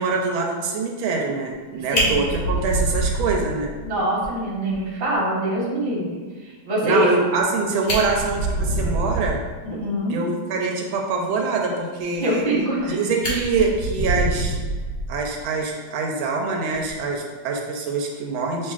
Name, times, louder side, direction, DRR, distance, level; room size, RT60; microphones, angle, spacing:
voice 1, 0.0-3.7 6.8-9.4 10.1-12.4 12.9-14.6 15.1-18.7, right 4 dB, 85° right, 0 dB, 1.4 m, -24 dB
Fire, 1.6-1.7 1.9-3.9 4.2-4.3 4.7-4.8 5.1-5.2 7.4-7.5 7.8-9.5 12.3-12.9 13.2-15.4 16.7-16.9, right 1 dB, 45° left, 1.2 m, -25 dB
voice 2, 3.8-7.1 9.6-10.2 12.2-13.1, right 1 dB, 35° right, -5 dB, 1.1 m, -24 dB
6.4 x 2.8 x 2.4 m, 1.4 s
omnidirectional pair, 2.2 m